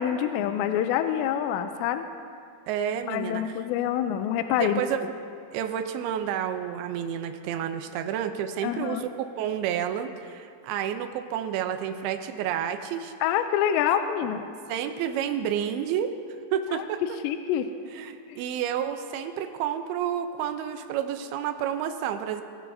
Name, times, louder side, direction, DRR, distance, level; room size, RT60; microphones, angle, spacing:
voice 1, 0.0-2.1 3.1-4.8 8.6-9.0 13.2-14.5 16.7-16.8 17.2-17.7 18.3-18.4, left 10 dB, 80° left, 8 dB, 2.7 m, -26 dB
voice 2, 2.7-3.5 4.6-5.0 5.5-13.1 14.7-16.1 16.5-17.0 17.9-22.4, right 9 dB, 85° right, 7 dB, 2.2 m, -30 dB
24.5 x 14.5 x 2.7 m, 2.3 s
omnidirectional pair, 5.3 m